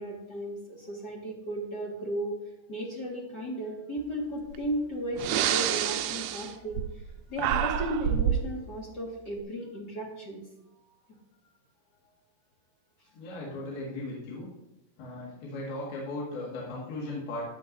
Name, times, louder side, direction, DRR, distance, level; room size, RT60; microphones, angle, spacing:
voice 1, 0.0-2.4 2.7-6.8 7.3-10.4, right 1 dB, 45° left, -3 dB, 1.4 m, -35 dB
Breathing, 4.5-4.7 5.1-7.1 7.4-8.5, right 10 dB, 85° right, 2.6 m, -28 dB
voice 2, 13.1-14.5 15.0-17.4, left 2 dB, 75° left, -4 dB, 3.8 m, -37 dB
14.5 x 9.0 x 2.7 m, 0.90 s
omnidirectional pair, 4.5 m